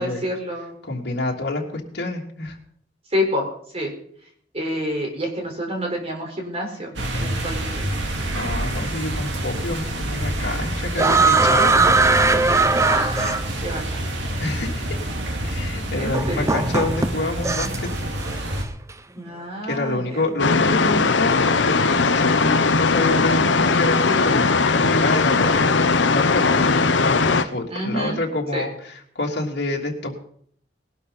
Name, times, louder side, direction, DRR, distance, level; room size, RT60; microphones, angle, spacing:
voice 1, 0.0-0.8 3.1-3.5 3.7-3.9 4.5-7.9 12.8-14.0 16.0-16.5 19.2-20.3 27.7-28.2 28.5-28.7, equal, 35° right, 1 dB, 4.7 m, -28 dB
voice 2, 0.8-2.6 8.3-11.8 13.0-13.1 14.4-15.0 15.4-18.1 19.6-30.1, left 2 dB, 65° left, -1 dB, 3.2 m, -27 dB
sound 1, 7.0-18.6, right 1 dB, 85° right, 2.4 m, -27 dB
sound 2, 11.0-13.8 14.9-15.0 16.1-17.9 18.2-18.6, right 3 dB, 15° right, 0.6 m, -19 dB
sound 3, 20.4-27.4, left 4 dB, 80° left, 0.9 m, -19 dB
20.0 x 12.0 x 4.2 m, 0.62 s
head